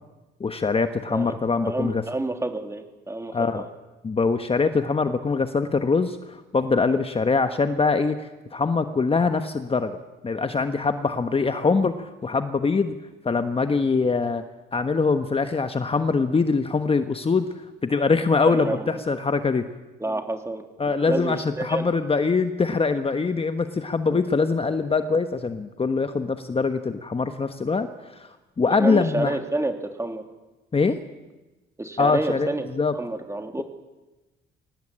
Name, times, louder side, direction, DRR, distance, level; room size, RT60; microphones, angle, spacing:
voice 1, 0.4-2.0 3.3-3.6 4.0-10.0 10.2-12.9 13.2-14.4 14.7-17.5 17.8-19.6 20.8-29.4 30.7-31.0 32.0-32.9, left 4 dB, 30° left, 8 dB, 1.3 m, -23 dB
voice 2, 1.6-3.7 18.4-19.0 20.0-20.6 21.1-21.9 28.8-30.2 31.8-32.6 32.9-33.6, right 2 dB, 15° right, 5 dB, 3.0 m, -29 dB
23.5 x 18.5 x 8.9 m, 1.1 s
cardioid pair, 90°, 20 cm